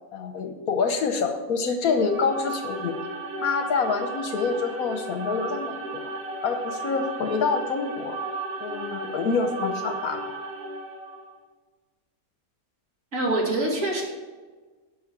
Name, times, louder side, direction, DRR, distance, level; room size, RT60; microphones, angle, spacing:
voice 1, 0.1-2.9 3.4-6.1 6.4-8.2 8.6-10.2, left 5 dB, 75° left, 6 dB, 1.3 m, -26 dB
sound 1, 1.8-11.3, right 2 dB, 85° right, 1.6 m, -35 dB
voice 2, 13.1-14.0, right 1 dB, 60° right, -2 dB, 2.8 m, -24 dB
11.0 x 6.0 x 6.9 m, 1.4 s
omnidirectional pair, 1.5 m